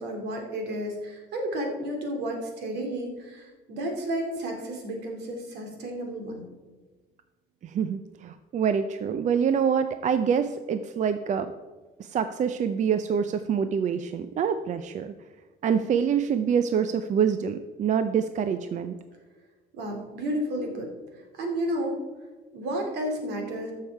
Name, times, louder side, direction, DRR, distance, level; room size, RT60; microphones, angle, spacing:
voice 1, 0.0-6.5 19.7-20.9 21.4-22.0 22.5-23.7, right 1 dB, 80° right, 2 dB, 2.7 m, -32 dB
voice 2, 7.6-11.5 12.0-15.1 15.6-18.9, right 7 dB, 45° right, 10 dB, 0.5 m, -26 dB
12.5 x 6.7 x 4.6 m, 1.3 s
cardioid pair, 110°, 17 cm